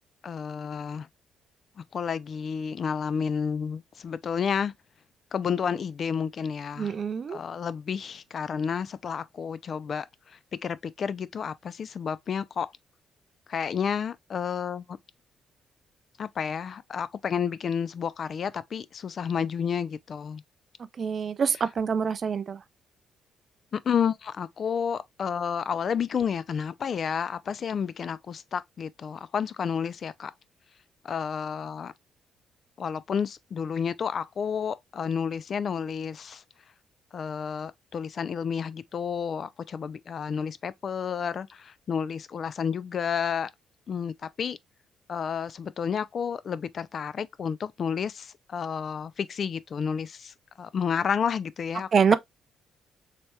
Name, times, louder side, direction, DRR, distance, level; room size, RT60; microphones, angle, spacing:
voice 1, 0.2-1.1 1.9-4.7 5.3-7.0 7.3-12.7 13.5-15.0 16.2-20.4 23.7-30.3 31.0-31.9 32.8-36.4 37.1-43.5 43.9-44.6 45.1-52.1, left 7 dB, 50° left, 0.3 m, -31 dB
voice 2, 6.8-7.4 21.0-22.6 51.9-52.1, right 6 dB, 50° right, 0.3 m, -25 dB
4.2 x 3.3 x 2.2 m
cardioid pair, 90°, 0 cm